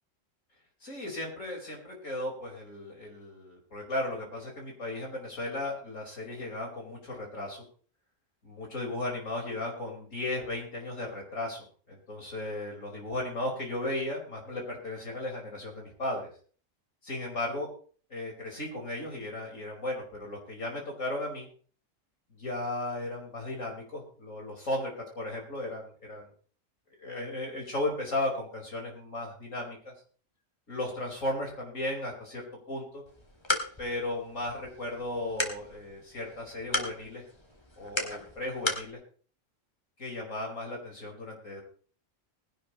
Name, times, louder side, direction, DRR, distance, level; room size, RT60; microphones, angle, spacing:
voice 1, 0.8-7.6 8.4-16.3 17.0-17.7 18.1-21.5 22.3-26.3 27.0-29.9 30.7-33.0 33.8-37.2 37.8-39.0 40.0-41.6, left 1 dB, 75° left, -1 dB, 5.0 m, -35 dB
sound 1, 33.1-38.9, left 2 dB, 20° left, 2.0 m, -36 dB
20.0 x 11.0 x 3.0 m, 0.42 s
omnidirectional pair, 1.3 m